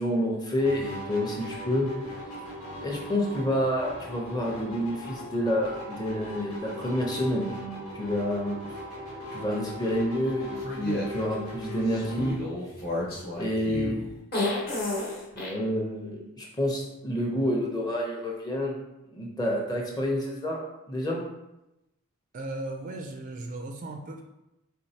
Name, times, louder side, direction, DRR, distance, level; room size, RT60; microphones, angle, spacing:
voice 1, 0.0-1.9 2.8-8.6 9.3-12.4 13.4-14.1 15.3-18.8 19.1-21.2, equal, 15° left, -1 dB, 0.7 m, -29 dB
sound 1, 0.6-12.3, left 1 dB, 85° left, 1.5 m, -39 dB
sound 2, 10.6-11.0 11.9-15.5, left 2 dB, 45° left, 1.0 m, -31 dB
voice 2, 22.3-24.2, right 2 dB, 35° right, 3 dB, 0.3 m, -36 dB
4.4 x 3.6 x 2.8 m, 0.93 s
head